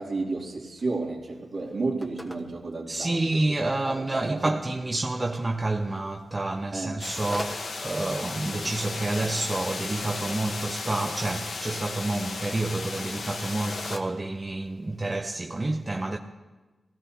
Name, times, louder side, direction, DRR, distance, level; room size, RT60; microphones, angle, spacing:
voice 1, 0.0-3.5 3.8-4.6 6.7-7.1 7.3-7.4, right 3 dB, 60° right, 2.8 m, -32 dB
Telephone, 0.7-15.2, equal, 10° left, 1.3 m, -47 dB
voice 2, 2.9-16.2, right 2 dB, 25° right, 0.7 m, -29 dB
sound 1, 7.0-14.0, left 3 dB, 75° left, 1.2 m, -35 dB
23.0 x 16.5 x 2.9 m
cardioid pair, 75°, 0 cm